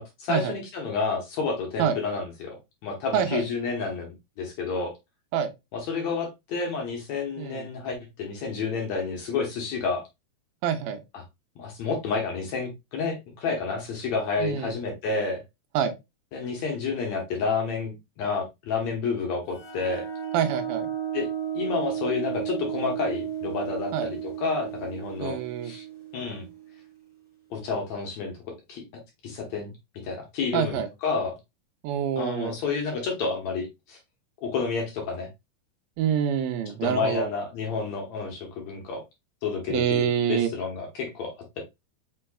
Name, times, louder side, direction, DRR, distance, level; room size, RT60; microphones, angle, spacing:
voice 1, 0.0-2.6 2.8-4.9 5.7-10.0 11.6-15.4 16.3-20.1 21.1-21.3 21.5-25.4 25.6-25.8 26.1-26.5 27.5-28.3 28.7-28.8 29.2-29.7 30.0-31.4 32.2-34.0 34.4-35.3 36.8-39.0 39.4-41.6, left 4 dB, 65° left, 1.9 m, -30 dB
voice 2, 3.1-3.4 5.3-5.5 7.4-7.7 10.6-11.0 14.4-14.8 15.7-16.0 20.3-20.9 23.9-24.1 25.2-25.7 30.5-30.9 31.8-32.5 36.0-37.3 39.7-40.5, right 9 dB, 80° right, 2.4 m, -26 dB
sound 1, 19.5-27.0, right 9 dB, 30° left, 2.0 m, -34 dB
5.4 x 4.3 x 2.3 m
omnidirectional pair, 4.3 m